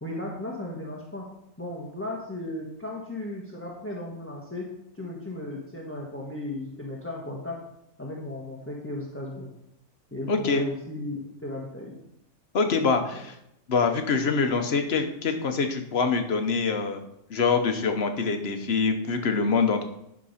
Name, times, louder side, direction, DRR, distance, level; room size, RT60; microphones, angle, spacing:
voice 1, 0.0-1.2 1.6-4.7 4.9-7.6 8.0-9.5 10.1-12.0, left 1 dB, 10° left, -3 dB, 1.3 m, -35 dB
voice 2, 10.3-10.6 12.5-13.4 13.7-17.0 17.3-19.8, left 4 dB, 55° left, 6 dB, 1.2 m, -25 dB
11.0 x 5.3 x 5.7 m, 0.81 s
omnidirectional pair, 1.3 m